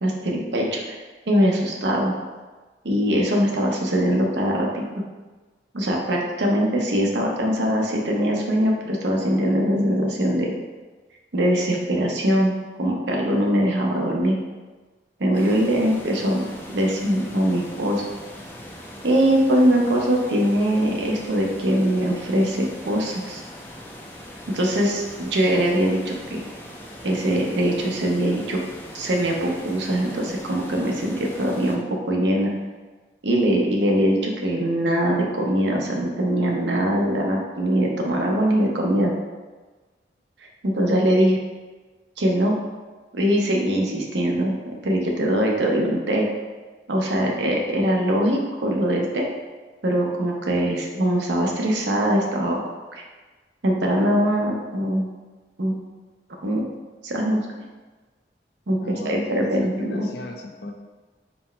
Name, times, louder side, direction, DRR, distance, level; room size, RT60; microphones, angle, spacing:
voice 1, 0.0-1.0 1.3-2.1 2.8-4.8 5.7-10.5 11.3-14.3 15.2-16.4 16.7-18.0 19.0-23.4 24.5-26.4 27.0-28.6 28.9-31.8 32.1-32.5 33.2-39.1 40.6-41.4 42.2-42.6 43.1-46.3 46.9-49.2 49.8-52.6 52.9-53.0 53.6-55.1 55.6-55.7 56.4-56.6 57.0-57.4 58.7-60.1, equal, 90° right, -1 dB, 0.8 m, -22 dB
sound 1, 15.3-31.8, equal, 10° left, 0.4 m, -41 dB
voice 2, 58.8-60.7, left 1 dB, 70° left, 2 dB, 0.5 m, -35 dB
4.3 x 2.2 x 4.3 m, 1.3 s
head